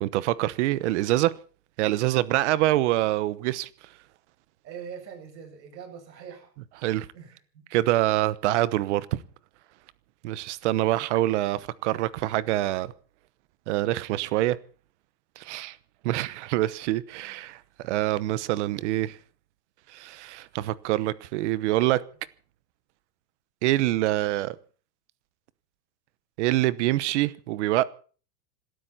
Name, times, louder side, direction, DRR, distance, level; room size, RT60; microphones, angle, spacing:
voice 1, 0.0-1.3 1.8-3.7 6.8-7.1 7.7-9.2 10.2-12.9 13.7-14.6 15.4-15.8 16.0-19.2 19.9-22.0 23.6-24.6 26.4-27.8, right 16 dB, 45° right, 1.0 m, -25 dB
voice 2, 4.6-6.5 7.1-7.7 17.5-17.6, right 7 dB, 80° right, 7.6 m, -43 dB
26.5 x 13.0 x 4.2 m
supercardioid pair, 160°, 50 cm